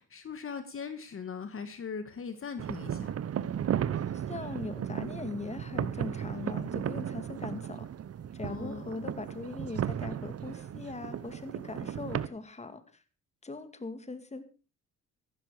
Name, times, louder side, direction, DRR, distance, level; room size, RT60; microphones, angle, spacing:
voice 1, 0.0-3.2 8.5-8.9, left 5 dB, 45° left, 10 dB, 1.9 m, -40 dB
sound 1, 2.6-12.3, right 9 dB, 50° right, 1.0 m, -35 dB
voice 2, 4.1-7.9 8.3-13.0 13.4-14.4, left 3 dB, 20° left, 11 dB, 2.3 m, -40 dB
14.5 x 12.5 x 5.0 m, 0.35 s
cardioid pair, 90°, 30 cm